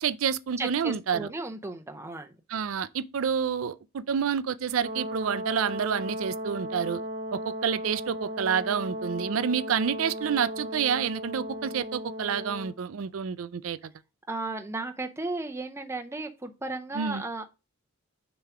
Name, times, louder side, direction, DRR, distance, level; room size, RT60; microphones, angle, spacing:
voice 1, 0.0-1.3 2.5-7.0 7.3-13.9 16.9-17.2, right 7 dB, 75° right, 0.4 m, -29 dB
voice 2, 0.6-2.3 14.3-17.4, right 2 dB, 15° right, 0.6 m, -35 dB
Brass instrument, 4.8-12.8, equal, 60° right, 0.9 m, -36 dB
6.5 x 3.0 x 4.8 m
head